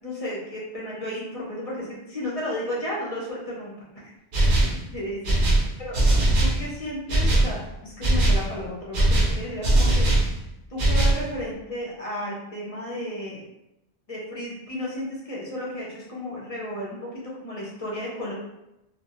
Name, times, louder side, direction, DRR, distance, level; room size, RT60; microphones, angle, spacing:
voice 1, 0.0-4.1 4.9-5.2 5.8-6.0 6.4-10.1 10.7-13.4 14.1-18.3, left 1 dB, 45° left, -5 dB, 0.5 m, -33 dB
sound 1, 4.3-4.8 5.2-6.6 7.1-7.5 8.0-8.5 8.9-10.3 10.8-11.2, right 1 dB, 55° right, 0.5 m, -20 dB
2.3 x 2.1 x 2.8 m, 0.89 s
omnidirectional pair, 1.1 m